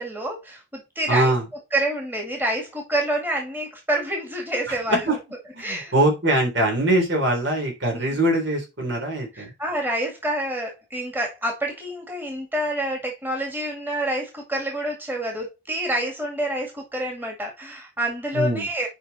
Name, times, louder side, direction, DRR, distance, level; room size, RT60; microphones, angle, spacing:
voice 1, 0.0-1.3 1.7-5.2 5.6-5.9 7.9-8.2 9.3-18.9, right 1 dB, 10° right, 2.1 m, -27 dB
voice 2, 1.1-1.4 4.9-5.2 5.5-9.5 18.3-18.7, right 1 dB, 65° right, 3.6 m, -22 dB
7.9 x 5.2 x 4.1 m
head